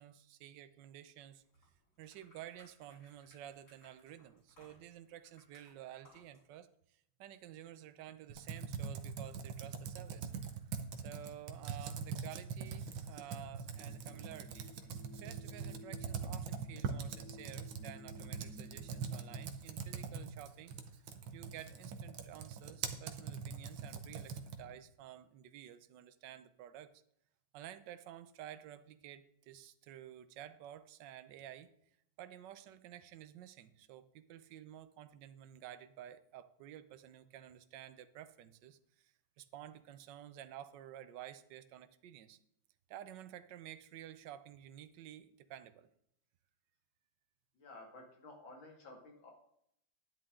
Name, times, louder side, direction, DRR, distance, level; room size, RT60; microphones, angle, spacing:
voice 1, 0.0-1.4 2.0-10.3 11.0-20.8 21.3-26.9 27.5-31.7 32.2-42.4 42.9-45.9, right 11 dB, 70° right, 13 dB, 1.3 m, -52 dB
eating and drinking dog, 1.3-6.4, equal, 50° left, 6.0 m, -66 dB
Computer keyboard, 8.3-24.7, right 6 dB, 90° right, 1.7 m, -43 dB
sound 1, 13.7-19.4, left 1 dB, 5° left, 2.1 m, -56 dB
voice 2, 47.5-49.3, left 2 dB, 75° left, 1 dB, 3.1 m, -53 dB
10.5 x 10.5 x 3.7 m, 0.72 s
omnidirectional pair, 2.1 m